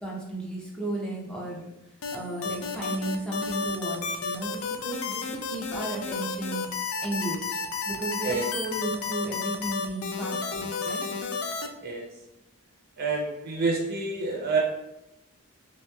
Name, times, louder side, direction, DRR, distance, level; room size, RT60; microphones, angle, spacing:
voice 1, 0.0-1.7 2.1-6.6 7.0-7.6 7.9-11.1, right 1 dB, 5° left, -4 dB, 0.5 m, -34 dB
sound 1, 2.0-11.7, left 5 dB, 65° left, 0.3 m, -32 dB
voice 2, 13.0-14.6, right 4 dB, 45° right, -2 dB, 0.5 m, -28 dB
2.8 x 2.8 x 2.2 m, 0.90 s
head